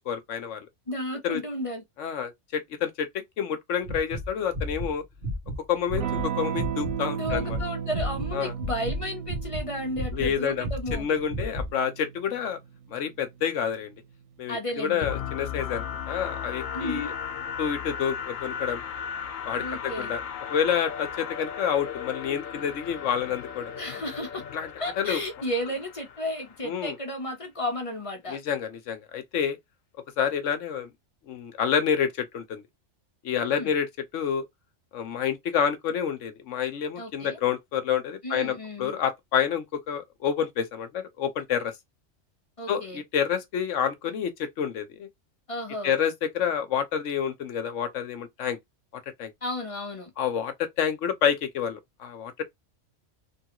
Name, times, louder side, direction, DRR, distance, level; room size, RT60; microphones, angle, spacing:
voice 1, 0.1-0.7 1.2-1.4 2.0-3.1 3.4-5.0 5.7-6.0 6.4-7.6 8.3-8.5 10.1-10.7 10.9-12.6 12.9-13.9 14.4-17.1 17.6-18.8 19.5-20.2 20.5-23.7 24.5-24.7 25.0-25.2 26.6-26.9 28.3-29.6 30.2-30.9 31.3-32.6 33.2-33.9 34.1-34.4 34.9-41.7 42.7-45.1 45.8-48.6 49.2-49.3 50.2-52.4, left 8 dB, 70° left, 1.0 m, -28 dB
voice 2, 0.9-1.8 7.0-11.1 14.5-15.1 16.7-17.2 19.6-20.1 23.8-24.4 24.8-28.4 33.4-33.7 37.0-37.4 38.2-38.9 42.6-43.0 45.5-45.9 49.4-50.1, left 1 dB, 30° left, 0.9 m, -33 dB
sound 1, 3.8-6.3 6.6-6.9 7.2-8.3 8.6-9.7 9.9-11.7, equal, 45° right, 1.1 m, -32 dB
Electric guitar / Strum, 5.9-14.2, right 8 dB, 85° right, 1.1 m, -35 dB
sound 2, 15.0-26.8, left 8 dB, 90° left, 1.1 m, -36 dB
3.3 x 2.4 x 2.9 m
omnidirectional pair, 1.3 m